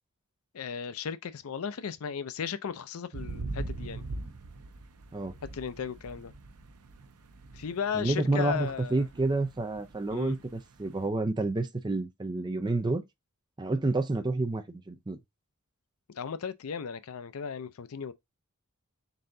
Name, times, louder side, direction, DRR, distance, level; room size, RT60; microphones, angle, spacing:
voice 1, 0.5-4.0 5.5-6.3 7.5-9.0 10.1-10.4 16.1-18.1, left 6 dB, 70° left, 0.5 m, -35 dB
sound 1, 3.1-11.0, right 2 dB, 90° right, 0.7 m, -42 dB
voice 2, 7.9-13.0 13.6-15.2, right 2 dB, 20° right, 0.5 m, -29 dB
4.0 x 3.8 x 2.6 m
head